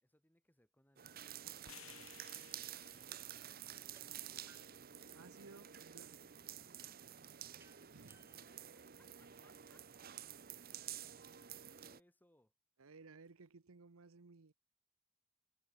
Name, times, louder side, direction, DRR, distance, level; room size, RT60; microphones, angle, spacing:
voice 1, 0.0-4.4 8.3-8.7 9.2-9.9 11.7-12.5, left 1 dB, 10° left, 2.8 m, -74 dB
sound 1, 1.0-12.0, right 10 dB, 45° right, 0.9 m, -51 dB
sound 2, 1.6-5.8, left 10 dB, 70° left, 2.4 m, -62 dB
sound 3, 4.0-4.1 4.5-5.7 7.6-9.6, right 2 dB, 10° right, 3.0 m, -70 dB
voice 2, 5.1-6.3 7.9-8.2 12.8-14.5, right 4 dB, 75° right, 0.9 m, -59 dB
head